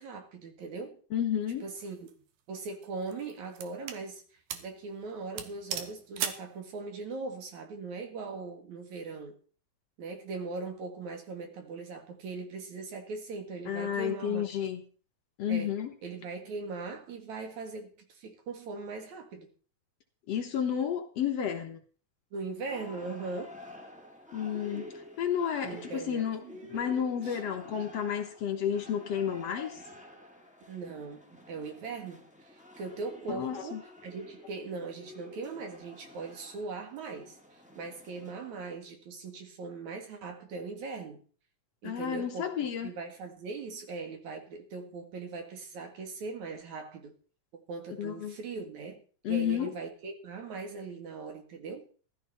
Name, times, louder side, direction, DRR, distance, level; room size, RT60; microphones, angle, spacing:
voice 1, 0.0-1.0 1.6-2.2 2.5-4.2 4.6-9.4 10.0-14.4 15.5-15.7 16.0-19.5 22.3-23.6 25.6-26.6 27.2-27.4 30.7-41.2 41.8-47.1 47.7-49.0 49.3-51.9, right 4 dB, 65° right, 3.3 m, -40 dB
voice 2, 1.1-1.6 13.7-14.8 15.4-15.9 20.3-21.8 24.3-24.9 25.2-29.8 33.3-33.8 41.8-42.9 48.0-48.4 49.2-49.7, left 8 dB, 60° left, 2.0 m, -31 dB
sound 1, 1.8-2.1 2.8-4.0 4.5-4.7 5.0-5.1 5.4-6.5, right 8 dB, 80° right, 2.7 m, -37 dB
sound 2, 22.6-38.8, equal, 5° right, 0.9 m, -50 dB
15.0 x 12.5 x 4.2 m
omnidirectional pair, 3.6 m